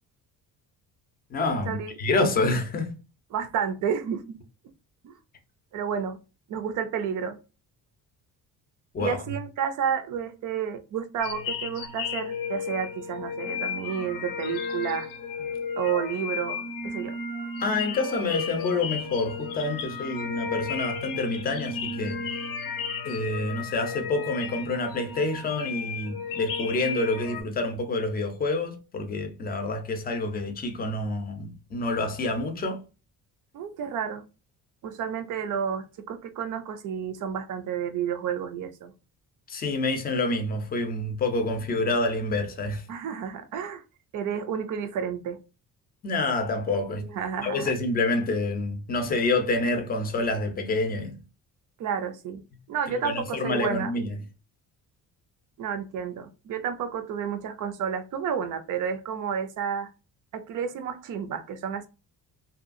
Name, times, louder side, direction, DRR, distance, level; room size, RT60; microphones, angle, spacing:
voice 1, 1.3-3.0 8.9-9.2 17.6-22.2 23.0-32.8 39.5-42.9 46.0-47.1 47.4-51.2 52.9-54.1, left 2 dB, 25° left, 0.5 m, -27 dB
voice 2, 3.3-4.4 5.0-5.1 5.7-6.2 6.5-7.4 9.0-15.1 15.8-17.2 33.5-34.2 34.8-38.9 42.9-43.8 44.1-45.4 47.1-47.7 51.8-52.4 52.7-53.9 55.6-59.9 60.3-61.9, right 7 dB, 60° right, 0.5 m, -31 dB
sound 1, 11.2-27.4, left 5 dB, 70° left, 0.6 m, -34 dB
2.7 x 2.3 x 2.5 m
cardioid pair, 155°, 36 cm